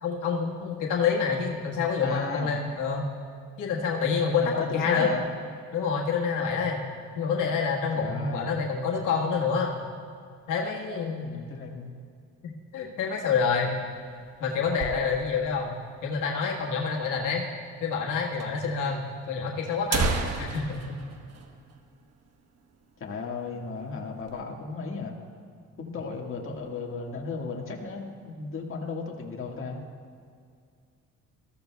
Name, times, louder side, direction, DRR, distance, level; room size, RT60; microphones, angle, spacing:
voice 1, 0.0-3.1 3.6-5.1 5.7-6.8 7.1-9.8 10.5-11.4 12.4-13.7 14.4-15.7 16.0-17.4 17.8-19.0 19.3-21.0, left 5 dB, 85° left, -2 dB, 1.5 m, -27 dB
voice 2, 2.0-2.5 4.4-5.3 7.9-8.5 11.2-11.9 23.0-25.2 25.8-29.8, left 4 dB, 45° left, -1 dB, 1.8 m, -35 dB
sound 1, 13.7-15.5 15.9-16.0 16.2-16.3 16.9-17.0 18.0-18.1 18.4-18.5 19.2-19.3 19.7-22.3 22.6-22.7 23.2-23.4 23.8-24.4, right 4 dB, 55° right, 1.2 m, -32 dB
19.0 x 14.5 x 2.3 m, 2.2 s
cardioid pair, 90°, 30 cm